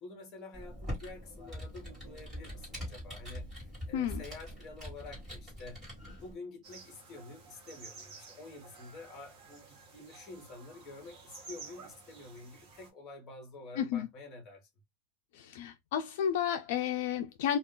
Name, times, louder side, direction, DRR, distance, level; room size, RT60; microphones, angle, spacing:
voice 1, 0.0-5.8 6.2-14.7, left 3 dB, 25° left, 1.0 m, -49 dB
Computer keyboard, 0.5-6.3, equal, 10° right, 1.6 m, -43 dB
sound 1, 6.6-12.9, right 4 dB, 35° right, 1.0 m, -52 dB
voice 2, 13.8-14.1 15.3-17.6, left 9 dB, 60° left, 0.4 m, -32 dB
2.3 x 2.3 x 3.7 m
supercardioid pair, 175°, 0 cm